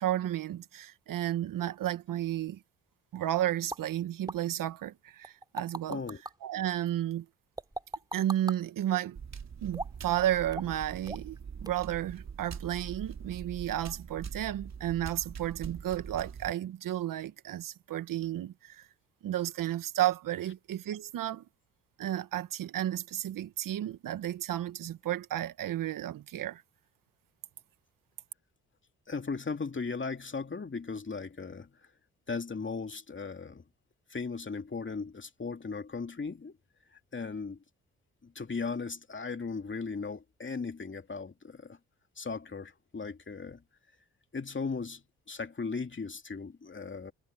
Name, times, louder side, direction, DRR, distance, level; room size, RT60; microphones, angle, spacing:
voice 1, 0.0-2.6 3.1-6.0 6.4-7.2 8.1-9.2 9.6-18.9 19.2-21.4 22.0-26.6, right 12 dB, 70° right, 1.7 m, -32 dB
sound 1, 3.7-3.8 4.3-4.4 5.2-6.3 7.6-8.6 9.7-10.1 10.5-10.8 11.1-11.4 11.7-11.8, right 1 dB, 10° right, 3.4 m, -38 dB
voice 2, 5.9-6.2 29.1-31.7 32.3-33.6 34.1-36.5 37.1-37.6 38.2-41.8 42.2-43.6 44.3-47.1, left 4 dB, 35° left, 2.8 m, -37 dB
sound 2, 9.1-16.5, right 6 dB, 50° right, 3.4 m, -43 dB
hypercardioid pair, 45°, 34 cm